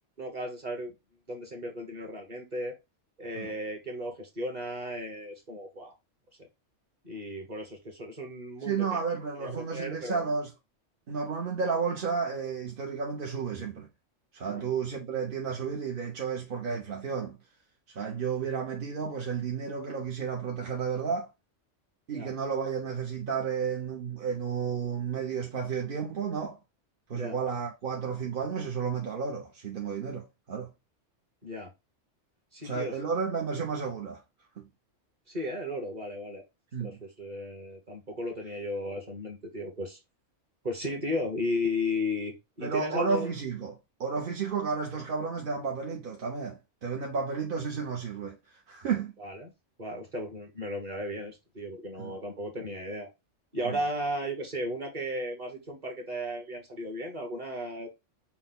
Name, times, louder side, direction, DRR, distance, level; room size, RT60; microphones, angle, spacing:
voice 1, 0.2-0.9 1.3-2.7 3.2-5.9 7.0-9.0 9.4-10.3 14.5-14.7 22.1-22.3 27.1-27.4 31.4-31.7 32.5-33.0 35.3-36.4 36.8-40.0 40.6-43.3 49.2-49.5 49.8-53.1 53.5-57.9, left 1 dB, 35° right, 1.3 m, -35 dB
voice 2, 8.7-10.5 11.1-13.9 14.3-17.4 17.9-21.3 22.1-26.6 27.1-30.7 32.6-34.2 34.6-34.7 36.7-37.0 42.6-49.2 52.0-52.2 53.6-53.8, right 6 dB, 50° right, 0.9 m, -32 dB
5.8 x 2.2 x 3.9 m
omnidirectional pair, 1.2 m